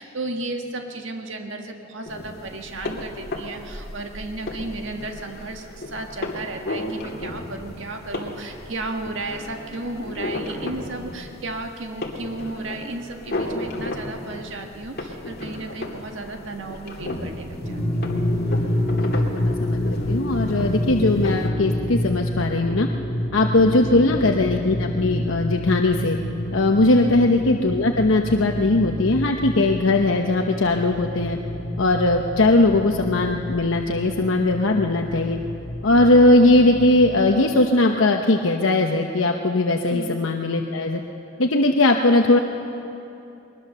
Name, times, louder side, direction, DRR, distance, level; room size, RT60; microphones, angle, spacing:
voice 1, 0.0-18.1 23.9-24.2 27.0-27.3 39.9-40.2, right 2 dB, 70° right, 3 dB, 1.7 m, -34 dB
sound 1, 2.1-21.5, left 1 dB, 50° left, 2.4 m, -34 dB
sound 2, 17.6-37.1, left 1 dB, ahead, 7.1 m, -28 dB
voice 2, 18.9-19.8 20.1-22.9 23.3-26.2 26.5-31.4 31.8-35.4 35.8-41.0 41.4-42.4, left 2 dB, 80° left, 2 dB, 1.0 m, -19 dB
21.0 x 20.5 x 6.8 m, 2.8 s
head